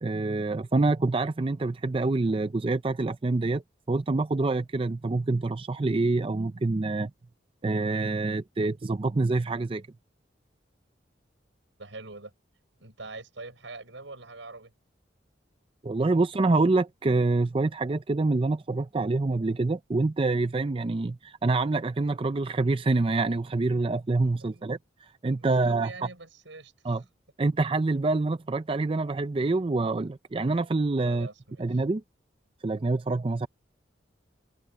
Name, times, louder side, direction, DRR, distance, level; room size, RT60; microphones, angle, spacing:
voice 1, 0.0-3.6 3.9-7.1 7.6-9.8 15.8-24.8 25.2-25.9 26.8-27.0 27.4-31.3 31.6-32.0 32.6-33.5, right 3 dB, 30° right, 0.5 m, -26 dB
voice 2, 11.8-12.3 12.8-14.7 24.4-24.7 25.3-27.0 31.0-31.8, right 3 dB, 90° right, 6.3 m, -44 dB
head